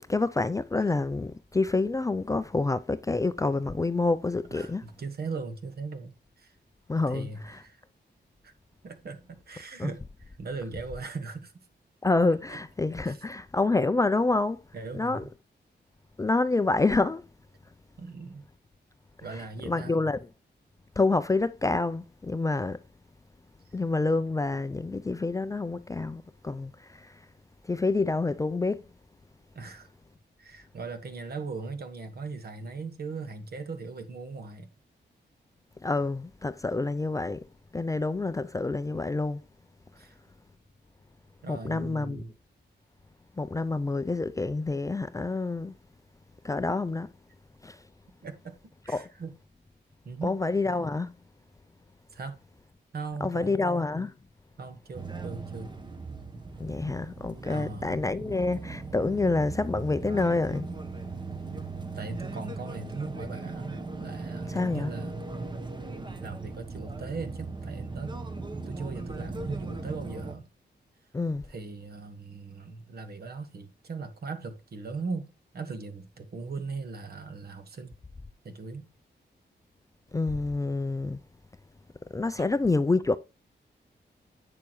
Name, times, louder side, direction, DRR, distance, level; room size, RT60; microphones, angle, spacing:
voice 1, 0.0-4.8 6.9-7.6 9.8-9.9 12.0-14.6 14.9-15.2 16.2-17.2 19.7-20.2 21.0-22.8 23.7-27.2 27.7-28.8 35.8-37.4 37.7-39.4 41.4-42.2 43.4-45.8 46.4-47.1 47.6-47.8 48.9-49.1 50.2-51.1 53.2-54.1 56.6-60.7 64.5-64.9 71.1-71.4 80.1-81.2 82.1-83.2, left 3 dB, 20° left, 0.4 m, -27 dB
voice 2, 4.5-6.5 7.1-7.8 8.4-8.5 8.8-11.5 12.5-12.6 13.0-13.2 14.7-15.3 18.0-18.5 19.2-20.0 29.5-29.9 30.4-34.7 40.0-40.2 41.4-42.3 48.2-48.5 48.8-49.3 50.0-50.4 52.1-52.4 52.9-53.7 54.6-55.8 57.5-58.0 61.9-65.3 65.7-68.2 68.6-70.4 71.5-77.9 78.4-78.9, right 4 dB, 60° right, 1.5 m, -39 dB
sound 1, 54.9-70.4, right 3 dB, 25° right, 1.1 m, -38 dB
8.4 x 6.7 x 3.1 m
wide cardioid pair, 115°, 19 cm